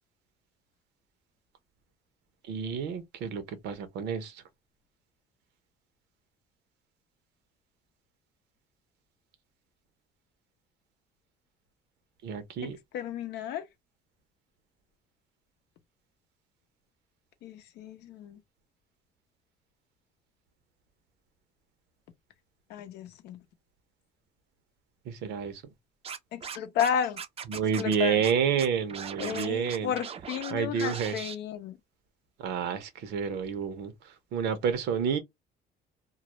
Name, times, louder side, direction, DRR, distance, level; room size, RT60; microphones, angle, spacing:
voice 1, 2.4-4.4 12.2-12.8 25.0-25.6 27.5-29.9 30.5-31.2 32.4-35.2, right 7 dB, 80° right, 0.7 m, -29 dB
voice 2, 12.6-13.7 17.4-18.4 22.7-23.4 26.3-27.2 27.8-28.2 29.2-31.8, left 9 dB, 80° left, 0.6 m, -33 dB
Scratching (performance technique), 26.0-26.9 27.2-28.0 28.2-28.3 28.6-30.5 30.8-31.4, right 7 dB, 35° right, 0.4 m, -39 dB
2.3 x 2.0 x 2.8 m
cardioid pair, 110°, 17 cm